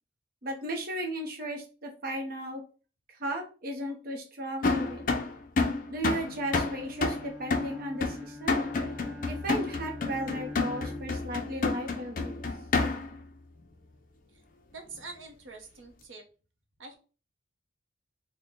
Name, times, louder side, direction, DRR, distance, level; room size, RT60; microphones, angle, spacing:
voice 1, 0.4-2.6 3.2-5.0 5.9-8.6 9.2-12.4, right 1 dB, 50° right, 2 dB, 0.7 m, -35 dB
sound 1, 4.6-13.2, left 3 dB, 45° left, 0.5 m, -30 dB
Bowed string instrument, 6.1-11.3, left 1 dB, 5° right, 0.5 m, -44 dB
voice 2, 14.7-16.2 16.8-17.0, right 4 dB, 90° right, 4 dB, 0.9 m, -45 dB
3.8 x 2.1 x 3.7 m, 0.36 s
head